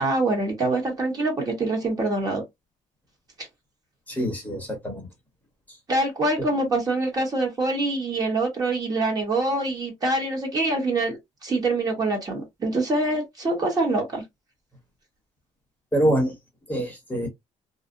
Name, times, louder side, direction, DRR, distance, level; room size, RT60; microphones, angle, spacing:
voice 1, 0.0-2.4 3.4-3.5 5.9-14.2, right 2 dB, 30° right, 1.1 m, -25 dB
voice 2, 4.1-5.1 5.7-5.8 15.9-16.4 16.7-17.3, right 1 dB, 10° left, 0.9 m, -25 dB
2.5 x 2.0 x 2.5 m
cardioid pair, 135°, 13 cm